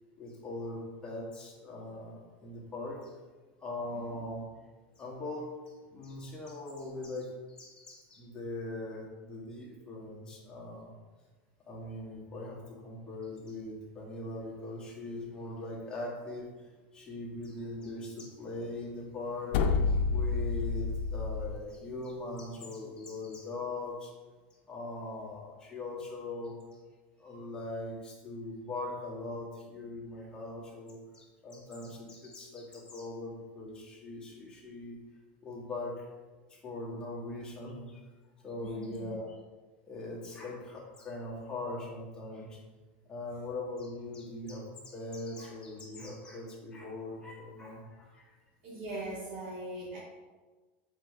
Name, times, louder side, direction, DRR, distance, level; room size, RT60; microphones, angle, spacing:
voice 1, 0.2-3.1 3.6-4.5 5.0-11.0 11.7-16.5 16.9-24.1 24.7-26.6 27.2-35.0 35.4-36.1 36.5-38.0 38.4-39.3 39.8-42.6 43.1-48.4, left 2 dB, 15° left, -4 dB, 1.6 m, -41 dB
voice 2, 3.9-4.2 38.6-39.1 48.6-50.0, right 2 dB, 75° right, -8 dB, 2.1 m, -41 dB
sound 1, 19.5-21.6, left 4 dB, 65° left, 0.6 m, -29 dB
7.5 x 4.5 x 3.6 m, 1.3 s
supercardioid pair, 160°, 6 cm